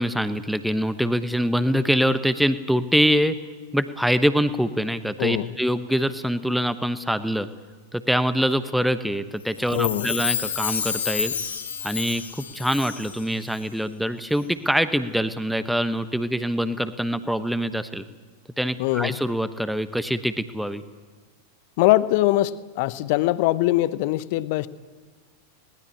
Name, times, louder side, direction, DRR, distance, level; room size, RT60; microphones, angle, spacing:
voice 1, 0.0-3.4 3.7-7.5 7.9-11.3 11.8-18.0 18.6-20.8, equal, ahead, 12 dB, 1.1 m, -24 dB
voice 2, 5.2-5.5 9.7-10.1 18.8-19.2 21.8-24.7, left 16 dB, 50° left, 17 dB, 0.9 m, -22 dB
Chime, 9.6-13.2 13.5-13.6, left 7 dB, 70° left, 4.3 m, -29 dB
21.5 x 19.0 x 8.5 m, 1.4 s
figure-of-eight pair, 90°, 0 cm